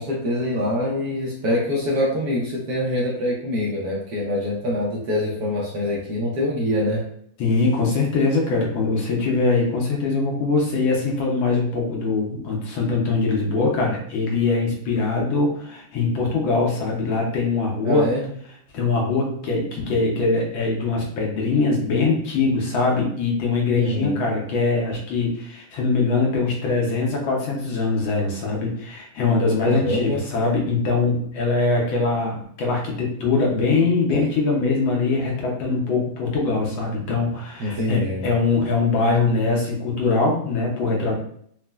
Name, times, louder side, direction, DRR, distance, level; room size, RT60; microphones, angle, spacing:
voice 1, 0.0-7.0 17.8-18.3 23.7-24.2 29.6-30.3 34.1-34.3 37.6-38.3, left 1 dB, 70° right, -3 dB, 1.0 m, -25 dB
voice 2, 7.4-18.1 18.7-41.2, left 3 dB, 80° left, -2 dB, 1.5 m, -22 dB
4.1 x 2.0 x 2.2 m, 0.65 s
omnidirectional pair, 2.1 m